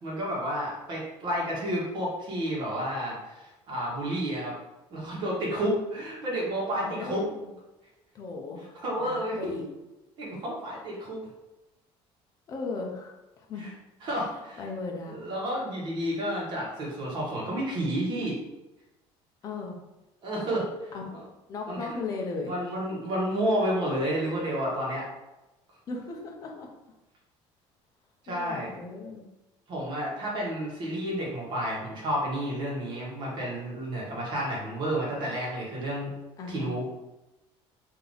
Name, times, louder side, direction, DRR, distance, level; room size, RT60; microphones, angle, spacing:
voice 1, 0.0-4.5 4.9-7.2 8.7-9.6 10.2-11.2 13.6-13.7 14.0-14.6 15.1-18.4 20.2-20.7 21.1-21.2 21.7-22.0 22.4-25.0 28.3-28.7 29.7-36.1 36.5-36.9, equal, 40° right, -4 dB, 1.4 m, -30 dB
voice 2, 6.8-7.5 8.1-9.6 12.5-13.7 14.6-15.2 19.4-19.8 20.9-21.1 21.5-22.5 25.9-26.7 28.3-29.2 36.4-36.7, left 3 dB, 30° left, 0 dB, 0.7 m, -37 dB
3.6 x 2.9 x 3.9 m, 1.0 s
cardioid pair, 175°, 11 cm